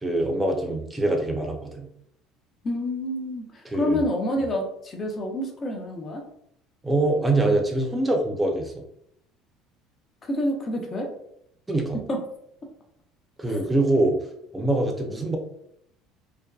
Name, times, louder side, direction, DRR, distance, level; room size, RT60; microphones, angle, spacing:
voice 1, 0.0-1.9 3.7-4.0 6.8-8.7 11.7-12.0 13.4-14.1 14.5-15.4, right 2 dB, 10° right, 2 dB, 0.5 m, -24 dB
voice 2, 2.6-6.3 10.2-11.1 12.1-12.2, left 1 dB, 30° left, 2 dB, 0.6 m, -28 dB
2.6 x 2.2 x 2.3 m, 0.74 s
supercardioid pair, 115°, 0 cm